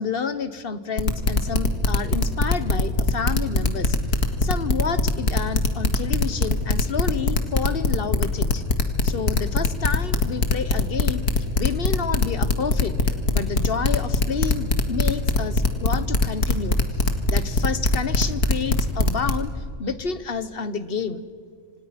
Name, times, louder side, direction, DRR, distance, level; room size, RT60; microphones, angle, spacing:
voice 1, 0.0-4.0 4.4-8.6 9.0-11.2 11.6-16.8 17.3-19.5 19.8-21.2, left 5 dB, 40° left, 13 dB, 1.3 m, -29 dB
sound 1, 1.0-19.3, left 3 dB, 75° left, 2.4 m, -20 dB
28.0 x 26.5 x 6.0 m, 2.1 s
omnidirectional pair, 1.6 m